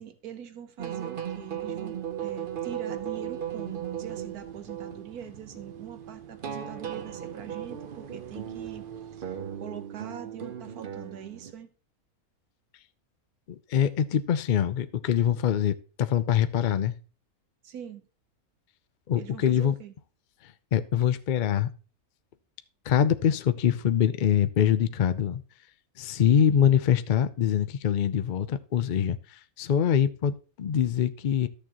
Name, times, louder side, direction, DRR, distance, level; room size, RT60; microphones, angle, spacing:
voice 1, 0.0-11.7 17.6-18.0 19.2-19.9, right 9 dB, 85° right, 1.5 m, -43 dB
sound 1, 0.8-11.5, right 9 dB, 50° right, 0.7 m, -37 dB
voice 2, 13.5-16.9 19.1-19.7 20.4-21.7 22.9-25.4 26.0-31.5, left 9 dB, 65° left, 0.4 m, -24 dB
13.5 x 6.7 x 3.0 m
omnidirectional pair, 1.5 m